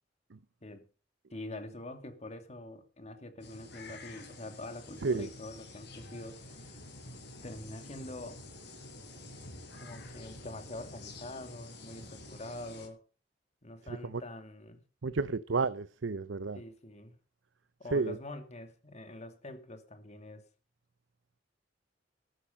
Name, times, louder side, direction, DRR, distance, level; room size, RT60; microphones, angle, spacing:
voice 1, 1.3-6.8 7.4-8.4 9.7-13.0 13.6-14.8 16.5-17.2 17.8-20.4, left 1 dB, 40° left, 2.6 m, -45 dB
sound 1, 3.4-12.9, left 2 dB, 65° left, 6.5 m, -49 dB
voice 2, 15.0-16.6 17.9-18.2, right 4 dB, 80° right, 0.7 m, -31 dB
13.5 x 12.5 x 5.6 m
head